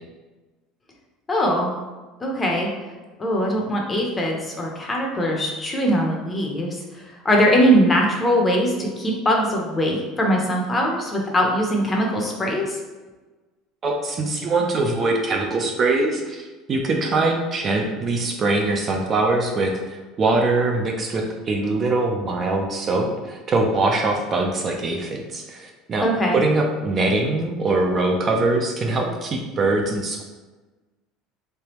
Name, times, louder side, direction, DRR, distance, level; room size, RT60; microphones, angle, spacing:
voice 1, 1.3-1.7 2.2-2.7 3.2-12.8 26.0-26.4, equal, 20° left, 0 dB, 0.7 m, -21 dB
voice 2, 13.8-26.1 26.3-30.2, right 2 dB, 30° right, 1 dB, 0.5 m, -22 dB
3.4 x 3.3 x 3.0 m, 1.2 s
cardioid pair, 135°, 0 cm